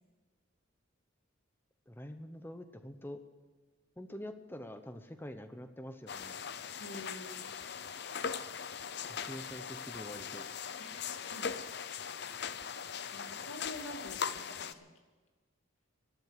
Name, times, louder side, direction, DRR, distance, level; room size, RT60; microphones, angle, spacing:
voice 1, 1.9-3.2 4.0-6.4 9.1-10.5, equal, 10° left, 8 dB, 0.9 m, -46 dB
sound 1, 6.1-14.7, left 7 dB, 50° left, 0.6 m, -40 dB
voice 2, 6.8-7.5 10.8-11.5 11.8-12.0 13.1-14.9, left 1 dB, 90° left, 3 dB, 2.4 m, -47 dB
12.5 x 12.5 x 8.1 m, 1.3 s
head